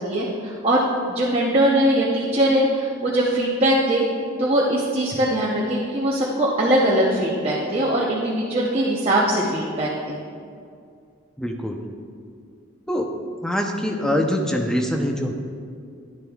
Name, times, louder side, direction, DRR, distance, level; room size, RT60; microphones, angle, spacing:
voice 1, 0.0-4.1 4.4-10.2, right 1 dB, 30° right, -6 dB, 0.8 m, -21 dB
voice 2, 11.4-11.8 12.9-13.1 13.4-15.3, equal, 5° left, 1 dB, 0.6 m, -24 dB
11.0 x 10.5 x 2.3 m, 2.3 s
head